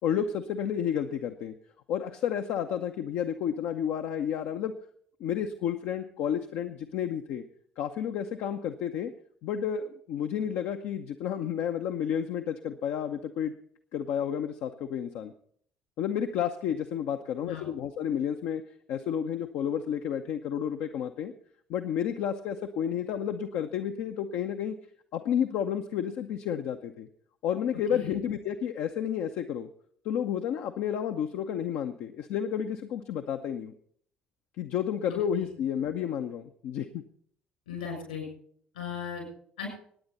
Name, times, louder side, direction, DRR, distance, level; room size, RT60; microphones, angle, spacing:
voice 1, 0.0-1.5 1.9-4.7 5.2-7.4 7.8-9.1 9.4-13.5 13.9-15.3 16.0-18.6 18.9-21.3 21.7-24.7 25.1-27.1 27.4-29.7 30.0-33.7 34.6-37.0, left 9 dB, 60° left, 6 dB, 0.7 m, -31 dB
voice 2, 35.1-35.5 37.7-38.3 38.7-39.2 39.6-39.7, left 7 dB, 80° left, 1 dB, 6.9 m, -37 dB
25.0 x 9.5 x 4.2 m, 0.62 s
figure-of-eight pair, 50°, 5 cm